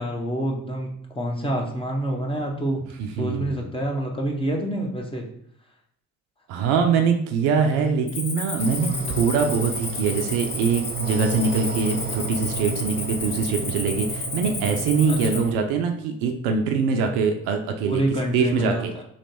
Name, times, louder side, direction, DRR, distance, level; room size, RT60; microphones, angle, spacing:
voice 1, 0.0-2.8 3.2-5.3 8.8-9.2 15.1-15.6 17.8-19.0, right 1 dB, 15° left, 0 dB, 1.1 m, -27 dB
voice 2, 3.0-3.6 6.5-18.0 18.3-18.9, right 5 dB, 75° right, 5 dB, 0.6 m, -23 dB
Cricket, 8.1-15.5, left 3 dB, 60° left, 1.0 m, -32 dB
sound 1, 8.6-15.5, right 5 dB, 30° right, 0.4 m, -32 dB
3.2 x 2.9 x 4.2 m, 0.69 s
hypercardioid pair, 45°, 37 cm